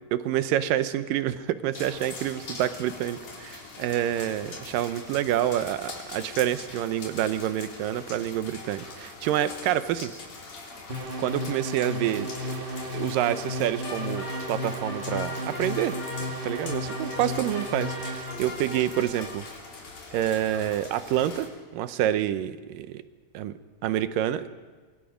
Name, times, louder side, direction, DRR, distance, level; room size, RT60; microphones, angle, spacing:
voice 1, 0.1-10.1 11.2-12.6 12.9-16.0 16.4-19.4 20.1-23.0 23.4-23.5 23.8-24.5, right 11 dB, 85° right, 11 dB, 2.5 m, -28 dB
sound 1, 1.7-21.5, left 3 dB, 65° left, 4.9 m, -43 dB
sound 2, 10.9-18.5, left 1 dB, 40° right, 0.7 m, -34 dB
sound 3, 13.8-19.3, left 2 dB, 30° left, 6.4 m, -40 dB
25.0 x 24.5 x 5.1 m, 1.4 s
omnidirectional pair, 3.8 m